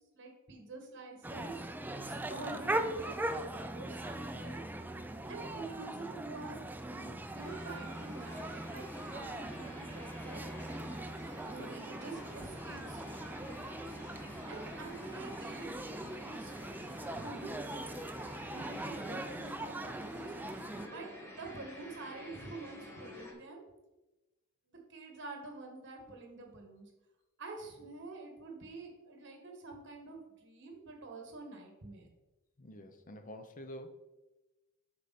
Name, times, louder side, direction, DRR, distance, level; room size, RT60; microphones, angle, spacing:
voice 1, 0.1-1.6 1.9-4.6 5.3-6.6 6.9-10.4 11.5-13.2 14.5-17.9 18.5-20.3 20.9-23.6 24.7-26.9 27.4-32.1, right 3 dB, 60° right, 2 dB, 1.8 m, -47 dB
sound 1, 1.2-20.9, right 1 dB, 10° right, 0.4 m, -40 dB
sound 2, 7.4-23.3, left 1 dB, 10° left, 1.8 m, -51 dB
voice 2, 32.6-33.9, left 1 dB, 40° left, 8 dB, 0.7 m, -48 dB
8.3 x 6.1 x 4.3 m, 1.0 s
head